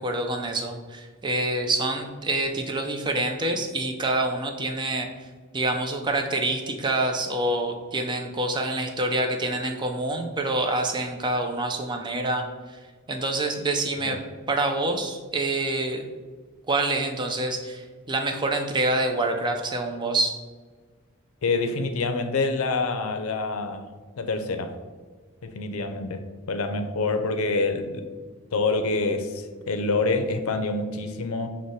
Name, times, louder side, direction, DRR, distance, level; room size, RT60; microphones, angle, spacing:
voice 1, 0.0-5.1 5.5-12.4 13.1-16.0 16.7-20.4, right 2 dB, 20° right, 4 dB, 0.4 m, -26 dB
voice 2, 21.4-23.9 24.2-24.8 25.4-26.2 26.5-28.1 28.5-31.5, left 3 dB, 85° left, 7 dB, 0.5 m, -26 dB
6.2 x 2.1 x 4.0 m, 1.4 s
head